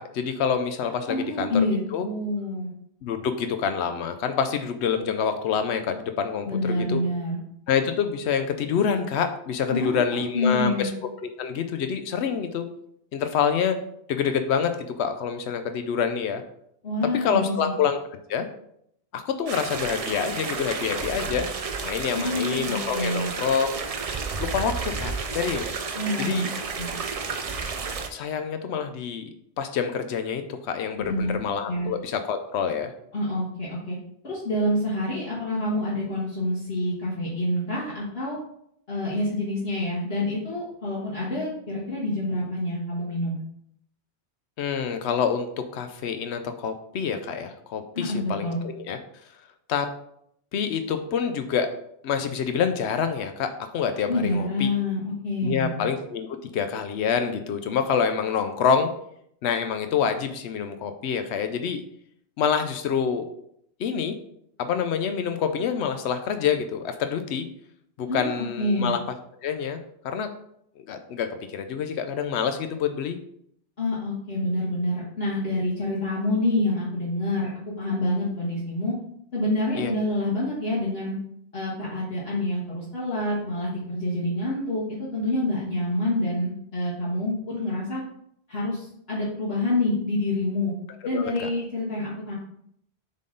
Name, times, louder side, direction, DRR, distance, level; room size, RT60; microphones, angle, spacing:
voice 1, 0.0-1.5 1.9-2.1 3.0-7.0 7.7-12.6 13.1-13.8 14.1-16.4 17.1-18.0 18.3-18.5 19.1-21.5 21.8-23.8 24.4-25.8 26.2-26.5 28.1-29.3 29.6-32.9 44.6-49.0 49.7-49.9 50.5-51.7 52.0-54.7 55.4-58.9 59.4-61.8 62.4-63.3 63.8-64.2 64.6-67.5 68.0-69.0 69.4-69.8 70.0-70.3 70.8-73.2 79.7-79.9 91.1-91.5, left 7 dB, 90° left, 8 dB, 0.9 m, -27 dB
voice 2, 1.1-2.7 6.4-7.4 9.7-10.9 16.8-17.7 22.1-23.3 25.9-26.4 26.8-26.9 31.0-31.4 31.7-31.9 33.1-34.0 34.2-38.4 38.9-43.4 47.9-48.6 54.1-55.9 68.1-68.9 73.8-78.9 79.3-81.2 81.5-88.0 88.5-90.7 91.0-92.4, left 1 dB, 65° left, -7 dB, 1.6 m, -27 dB
sound 1, 19.5-28.1, right 5 dB, 45° right, 0.6 m, -31 dB
7.4 x 3.8 x 3.8 m, 0.71 s
omnidirectional pair, 1.1 m